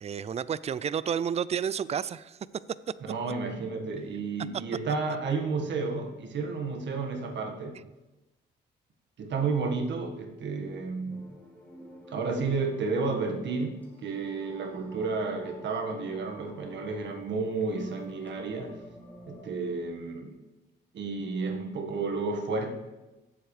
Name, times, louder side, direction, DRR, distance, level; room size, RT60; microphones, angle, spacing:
voice 1, 0.0-2.4, right 8 dB, 35° right, 18 dB, 0.4 m, -30 dB
voice 2, 3.0-7.8 9.2-11.3 12.1-18.8 19.3-20.3 20.9-22.7, right 4 dB, 65° right, 4 dB, 1.6 m, -31 dB
sound 1, 11.1-19.5, equal, 10° left, 3.0 m, -50 dB
16.0 x 7.8 x 3.3 m, 1.0 s
cardioid pair, 90°, 20 cm